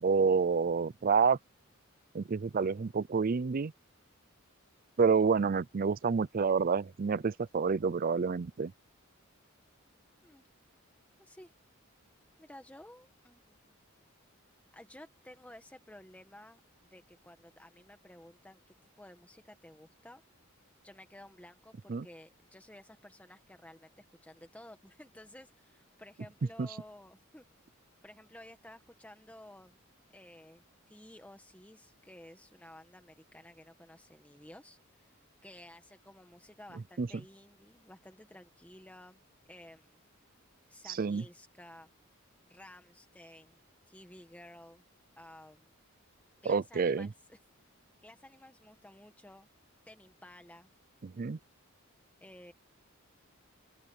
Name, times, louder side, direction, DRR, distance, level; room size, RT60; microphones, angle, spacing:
voice 1, 0.0-1.4 2.1-3.7 5.0-8.7 21.9-22.1 26.6-26.7 37.0-37.1 41.0-41.2 46.5-47.1 51.0-51.4, right 5 dB, 45° right, 0.4 m, -28 dB
voice 2, 11.2-11.5 12.4-13.5 14.7-20.2 20.8-27.5 28.0-29.8 30.1-35.1 35.4-39.2 39.5-40.0 40.7-41.9 42.5-43.6 43.9-44.8 45.2-45.7 46.4-47.4 48.0-49.5 49.9-50.7 52.2-52.5, left 1 dB, 5° left, 1.3 m, -54 dB
open air
head